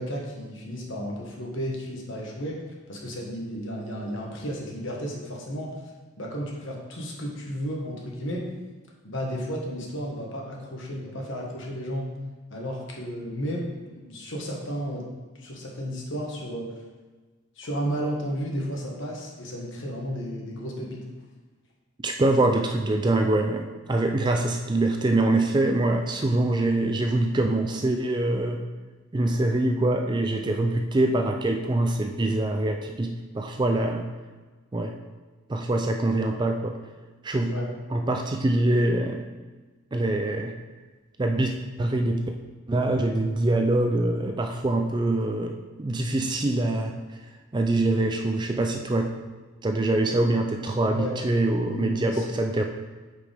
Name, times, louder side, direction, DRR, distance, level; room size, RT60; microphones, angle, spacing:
voice 1, 0.0-2.6 2.9-5.7 6.2-8.4 9.0-12.1 12.5-15.0 15.4-16.7 17.6-21.0 37.5-37.7 50.9-51.2 51.7-52.3, equal, 55° left, -2 dB, 1.4 m, -33 dB
voice 2, 22.0-28.6 29.1-34.1 34.7-34.9 35.5-36.8 37.2-37.5 37.9-39.3 39.9-40.5 41.2-41.5 41.8-42.2 42.7-47.2 47.5-49.1 49.6-52.6, right 2 dB, 20° right, 4 dB, 0.3 m, -24 dB
8.6 x 5.0 x 3.4 m, 1.3 s
head